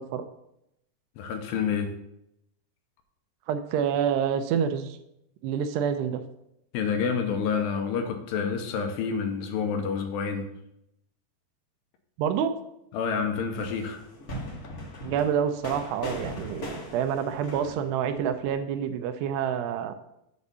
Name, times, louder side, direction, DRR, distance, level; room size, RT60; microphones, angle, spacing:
voice 1, 1.2-1.9 6.7-10.5 12.9-14.0, left 6 dB, 85° left, 5 dB, 2.8 m, -28 dB
voice 2, 3.5-5.0 5.4-6.2 12.2-12.5 15.0-19.9, right 8 dB, 80° right, 9 dB, 2.6 m, -27 dB
sound 1, 13.5-18.5, equal, 70° left, 0.8 m, -39 dB
7.2 x 4.1 x 6.7 m, 0.81 s
omnidirectional pair, 4.9 m